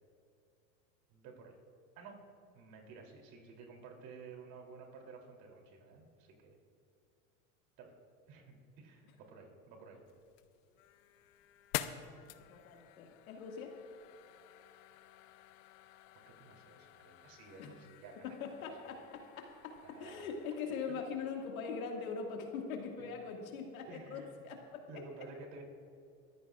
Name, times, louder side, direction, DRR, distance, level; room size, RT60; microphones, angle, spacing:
voice 1, 1.1-1.6 1.9-2.2 2.5-6.6 7.8-8.0 8.3-10.0 16.3-18.3 18.8-19.0 19.8-20.2 23.0-23.1 23.9-24.4 24.9-25.6, right 4 dB, 55° right, 1 dB, 3.2 m, -53 dB
sound 1, 10.1-21.0, left 13 dB, 65° left, 0.8 m, -49 dB
voice 2, 12.5-13.7 17.6-17.7 18.2-19.7 20.0-24.8, left 5 dB, 90° left, 2 dB, 2.1 m, -42 dB
22.5 x 14.5 x 2.5 m, 2.5 s
supercardioid pair, 110°, 41 cm